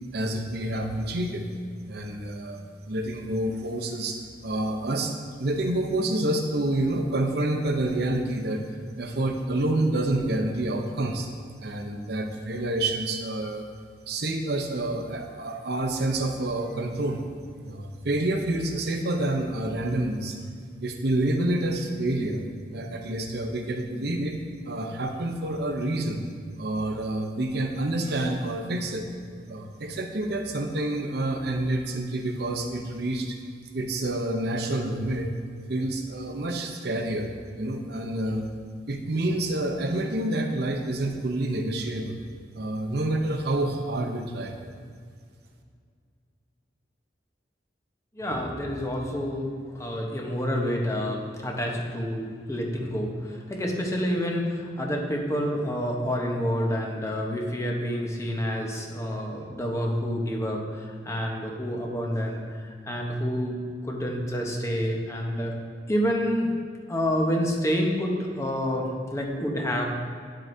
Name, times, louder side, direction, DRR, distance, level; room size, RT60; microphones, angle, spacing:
voice 1, 0.1-1.5 1.9-2.6 2.9-5.1 5.4-8.6 9.0-11.3 11.6-13.7 14.1-17.2 17.6-20.4 20.8-22.4 22.7-24.4 24.6-26.2 26.6-29.1 29.5-33.4 33.7-35.3 35.7-38.4 38.9-42.2 42.5-44.6, right 1 dB, 65° right, 4 dB, 0.7 m, -28 dB
voice 2, 48.1-63.6 63.8-65.5 65.9-66.5 66.9-69.8, equal, 15° left, 0 dB, 0.9 m, -28 dB
9.4 x 7.6 x 2.7 m, 2.1 s
head